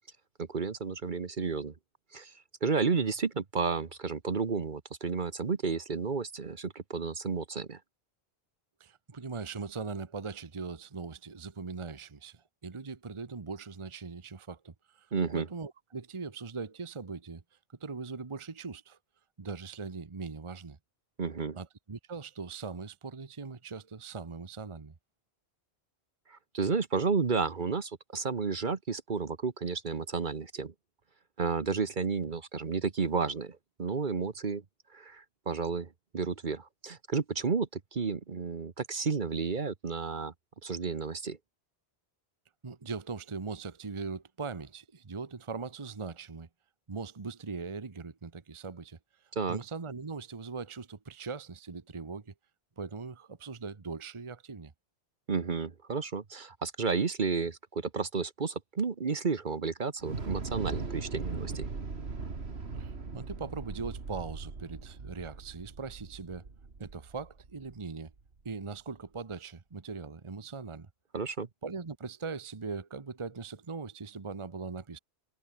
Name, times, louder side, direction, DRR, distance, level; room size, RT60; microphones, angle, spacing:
voice 1, 0.4-1.7 2.1-2.3 2.6-7.8 15.1-15.5 21.2-21.6 26.3-30.7 31.4-34.6 34.9-40.3 40.6-41.4 49.3-49.6 55.3-61.7 71.1-71.5, right 5 dB, 50° right, 1.3 m, -32 dB
voice 2, 8.8-17.4 17.8-19.0 19.4-20.8 21.5-24.9 42.6-46.5 46.9-52.3 52.8-54.7 62.8-66.5 66.8-68.1 68.4-70.9 71.6-75.0, right 4 dB, 30° right, 1.0 m, -40 dB
Thunder / Explosion, 60.0-68.2, right 4 dB, 90° right, 2.4 m, -39 dB
omnidirectional pair, 1.1 m